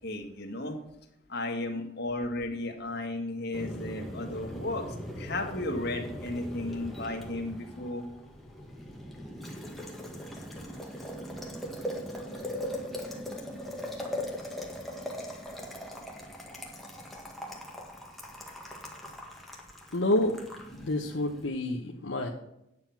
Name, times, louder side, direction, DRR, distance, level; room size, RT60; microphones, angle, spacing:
voice 1, 0.0-0.8 1.3-4.8 5.2-8.0, left 2 dB, 60° left, 2 dB, 1.9 m, -34 dB
Boiling, 3.5-21.5, equal, ahead, 1.8 m, -40 dB
voice 2, 19.9-20.4 20.7-22.3, left 1 dB, 80° left, 2 dB, 1.0 m, -28 dB
9.6 x 7.3 x 6.0 m, 0.83 s
head